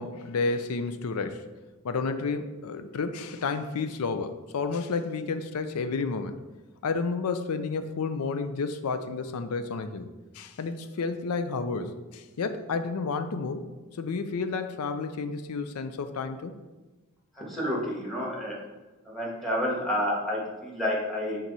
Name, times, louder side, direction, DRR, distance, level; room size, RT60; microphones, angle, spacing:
voice 1, 0.0-1.5 1.8-6.4 6.8-10.1 10.3-13.6 14.0-16.5, left 4 dB, 80° left, 9 dB, 0.5 m, -31 dB
voice 2, 17.5-18.5 19.1-21.4, left 1 dB, ahead, -4 dB, 1.5 m, -29 dB
6.0 x 3.9 x 4.1 m, 1.2 s
head